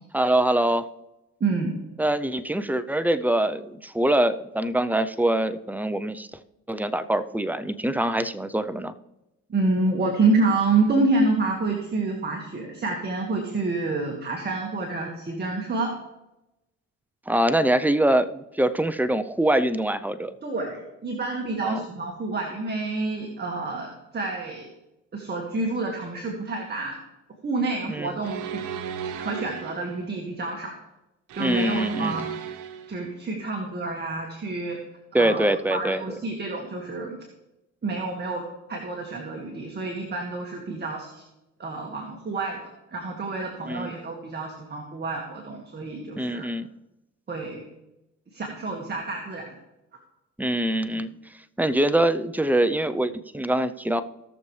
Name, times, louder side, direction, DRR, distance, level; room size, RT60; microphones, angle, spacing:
voice 1, 0.1-0.8 2.0-6.3 6.7-8.9 17.3-20.3 21.6-21.8 27.9-28.1 31.4-32.1 35.1-36.0 43.7-43.9 46.2-46.7 50.4-51.1 51.6-54.0, right 1 dB, 5° right, 11 dB, 0.6 m, -24 dB
voice 2, 1.4-1.8 9.5-15.9 20.4-24.7 25.1-27.0 27.4-28.6 29.2-30.8 31.3-32.3 32.9-34.8 35.1-37.2 37.8-38.4 38.7-41.2 41.6-42.6 42.9-46.5 47.3-47.6 48.3-49.5 50.9-51.0, right 3 dB, 35° right, 0 dB, 1.9 m, -28 dB
sound 1, 28.2-30.0 31.3-33.0, right 7 dB, 90° right, 1.0 m, -34 dB
18.0 x 6.9 x 3.3 m, 0.94 s
cardioid pair, 90°, 30 cm